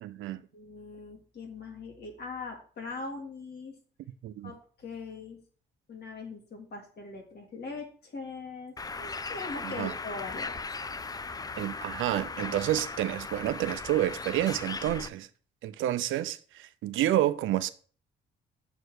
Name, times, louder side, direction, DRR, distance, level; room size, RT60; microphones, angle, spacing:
voice 1, 0.0-0.4 4.2-4.5 9.6-9.9 11.6-15.3 15.6-17.7, right 13 dB, 80° right, 0.6 m, -29 dB
voice 2, 0.5-3.7 4.4-5.4 5.9-10.6, left 3 dB, 55° left, 2.7 m, -41 dB
Bird, 8.8-15.1, left 4 dB, 20° left, 0.4 m, -38 dB
6.9 x 4.5 x 6.5 m
cardioid pair, 90°, 20 cm